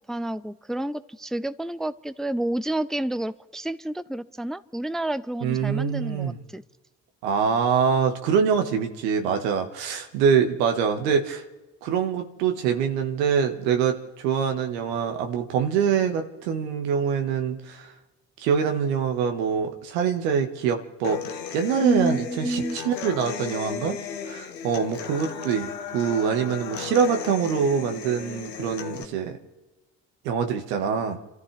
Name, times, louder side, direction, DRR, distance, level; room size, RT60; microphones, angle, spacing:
voice 1, 0.1-6.6 21.8-22.8, right 1 dB, ahead, 15 dB, 0.7 m, -29 dB
voice 2, 5.4-6.4 7.2-11.4 11.8-17.9 18.4-21.2 21.5-24.0 24.3-29.4 30.2-31.2, right 7 dB, 80° right, 6 dB, 1.7 m, -24 dB
Human voice / Acoustic guitar, 21.0-29.0, left 7 dB, 90° left, 1.2 m, -35 dB
30.0 x 14.0 x 3.4 m, 1.1 s
hypercardioid pair, 40°, 48 cm